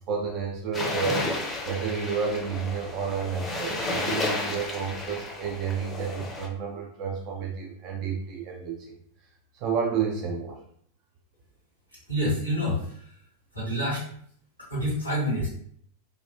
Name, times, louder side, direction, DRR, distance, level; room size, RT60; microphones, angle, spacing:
voice 1, 0.1-1.3 1.6-9.0 9.5-10.6, right 6 dB, 40° right, 0 dB, 0.4 m, -30 dB
sound 1, 0.7-6.5, left 2 dB, 15° left, 0.5 m, -32 dB
voice 2, 12.1-13.1 13.5-14.0 14.7-15.5, equal, 85° right, -7 dB, 1.3 m, -27 dB
2.9 x 2.1 x 2.4 m, 0.63 s
figure-of-eight pair, 90°, 0 cm